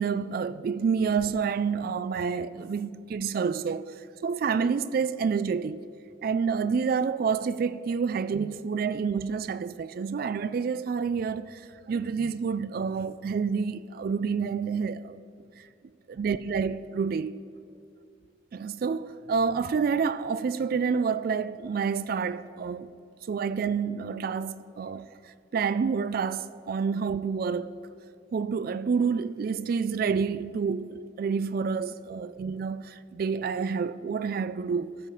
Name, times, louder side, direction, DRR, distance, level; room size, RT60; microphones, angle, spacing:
voice 1, 0.0-5.9 6.2-15.2 15.6-15.7 16.1-17.4 18.5-22.9 23.3-27.8 28.3-35.0, right 5 dB, 50° right, 0.3 m, -28 dB
15.0 x 6.5 x 5.6 m
head